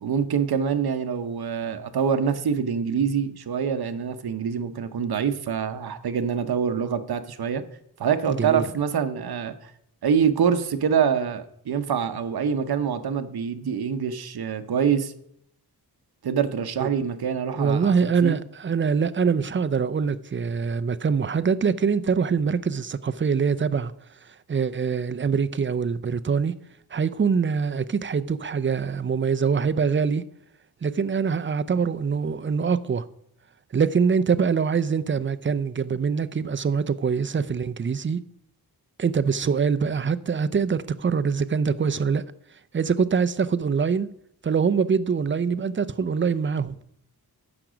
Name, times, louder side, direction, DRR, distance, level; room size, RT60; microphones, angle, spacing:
voice 1, 0.0-7.6 8.0-9.7 10.0-15.1 16.2-17.9 18.2-18.4, right 7 dB, 70° right, 0.9 m, -25 dB
voice 2, 8.3-8.6 16.8-16.9 17.6-23.9 24.5-26.5 26.9-30.2 30.8-33.0 33.7-38.2 39.0-42.2 42.7-44.1 44.4-46.8, right 6 dB, 30° right, 0.5 m, -24 dB
15.0 x 6.0 x 5.0 m
wide cardioid pair, 125°, 39 cm